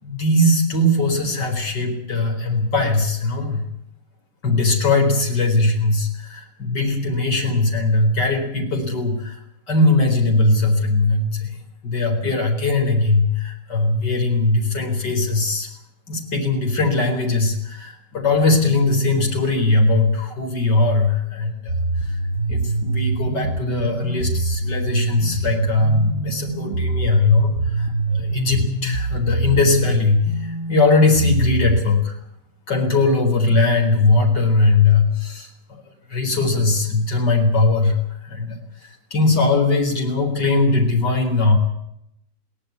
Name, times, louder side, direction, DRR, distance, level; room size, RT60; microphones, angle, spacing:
voice 1, 0.0-3.7 4.4-9.4 9.7-11.5 11.8-15.7 16.1-22.2 22.5-32.2 32.7-35.8 36.1-38.0 38.2-41.6, left 2 dB, 75° left, 3 dB, 4.9 m, -20 dB
sound 1, 21.7-31.8, right 2 dB, 60° right, 4.5 m, -24 dB
22.0 x 18.5 x 8.2 m, 0.78 s
omnidirectional pair, 1.9 m